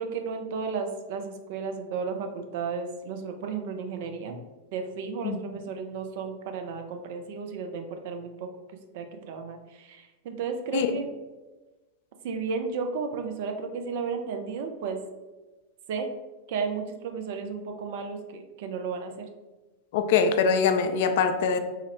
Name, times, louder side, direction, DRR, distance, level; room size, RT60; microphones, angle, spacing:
voice 1, 0.0-4.4 4.7-8.5 8.9-11.1 12.2-15.0 15.9-16.1 16.5-19.3, right 5 dB, 50° right, 5 dB, 0.4 m, -33 dB
voice 2, 19.9-21.6, left 6 dB, 50° left, 7 dB, 0.3 m, -23 dB
3.5 x 2.0 x 3.3 m, 1.2 s
figure-of-eight pair, 90°, 0 cm